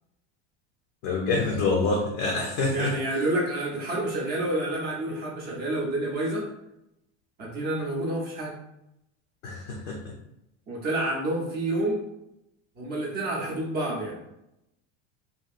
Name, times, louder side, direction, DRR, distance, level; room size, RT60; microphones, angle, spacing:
voice 1, 1.0-3.2 9.4-10.1, left 3 dB, 35° left, -1 dB, 0.4 m, -27 dB
voice 2, 2.7-6.5 7.4-8.5 10.7-12.0 12.8-14.2, right 1 dB, 25° right, -3 dB, 0.7 m, -29 dB
2.8 x 2.6 x 2.4 m, 0.85 s
supercardioid pair, 165°, 36 cm